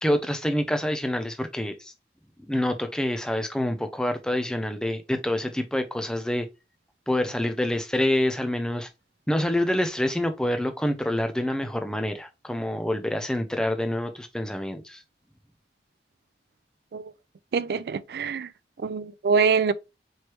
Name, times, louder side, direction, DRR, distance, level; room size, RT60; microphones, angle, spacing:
voice 1, 0.0-1.9 2.5-6.5 7.1-8.9 9.3-15.0, left 1 dB, 5° left, 0.4 m, -27 dB
voice 2, 17.5-18.5 18.8-19.7, right 5 dB, 65° right, 0.3 m, -24 dB
4.5 x 3.1 x 3.0 m
head